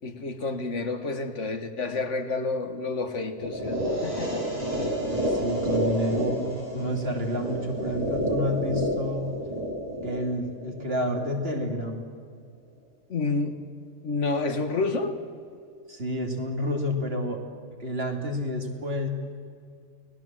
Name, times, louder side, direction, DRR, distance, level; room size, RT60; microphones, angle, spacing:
voice 1, 0.0-4.4 13.1-13.6 14.0-15.1, left 3 dB, 65° left, 8 dB, 1.9 m, -29 dB
sound 1, 3.4-11.4, equal, 30° right, 6.7 m, -29 dB
voice 2, 5.3-9.3 10.0-12.1 15.9-17.4 17.8-19.1, left 1 dB, 50° right, 2 dB, 3.1 m, -29 dB
29.5 x 19.0 x 7.6 m, 2.3 s
omnidirectional pair, 1.4 m